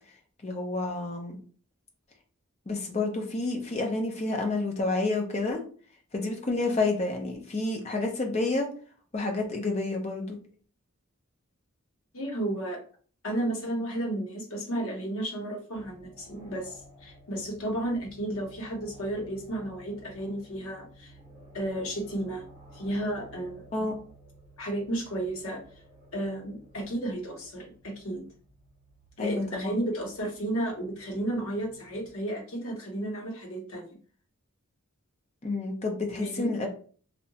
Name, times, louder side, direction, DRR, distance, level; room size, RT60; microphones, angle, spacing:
voice 1, 0.4-1.4 2.7-5.6 6.1-8.7 9.1-10.4 23.7-23.9 29.2-29.8 35.4-36.7, left 2 dB, 30° left, 3 dB, 0.5 m, -29 dB
voice 2, 12.1-12.8 13.2-21.1 21.5-22.4 22.7-23.7 24.6-25.6 26.1-28.2 29.2-34.0 36.1-36.5, right 1 dB, 75° left, 0 dB, 0.8 m, -33 dB
sound 1, 15.7-32.1, right 1 dB, 25° right, 1.5 m, -54 dB
2.7 x 2.1 x 2.7 m, 0.42 s
head